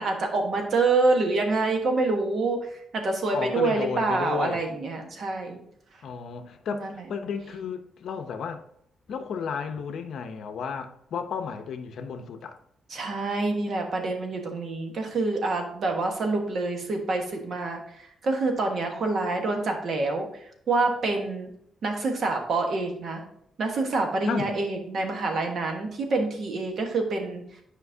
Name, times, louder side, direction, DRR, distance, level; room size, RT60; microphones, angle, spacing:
voice 1, 0.0-2.6 2.9-5.6 6.7-7.0 12.9-20.3 20.7-21.5 21.8-23.2 23.6-27.4, right 3 dB, 50° right, 1.3 m, -26 dB
voice 2, 3.3-4.6 6.0-8.6 9.1-12.6 24.2-24.5, left 6 dB, 65° left, 0.7 m, -33 dB
10.0 x 5.2 x 2.7 m
cardioid pair, 155°, 0 cm